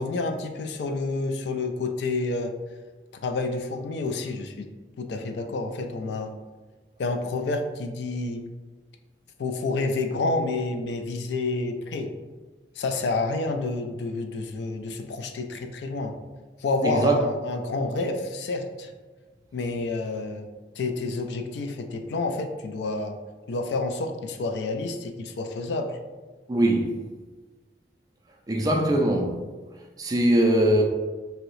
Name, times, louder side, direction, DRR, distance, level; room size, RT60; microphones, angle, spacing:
voice 1, 0.0-2.5 3.2-4.7 5.0-6.4 7.0-8.4 9.4-12.1 12.8-16.1 16.6-18.9 19.5-20.5 20.8-23.2 23.5-26.0, left 3 dB, 75° left, 0.3 m, -29 dB
voice 2, 16.8-17.1 26.5-27.0 28.5-29.4 30.0-30.8, right 1 dB, 20° right, 0.3 m, -21 dB
2.8 x 2.6 x 3.1 m
head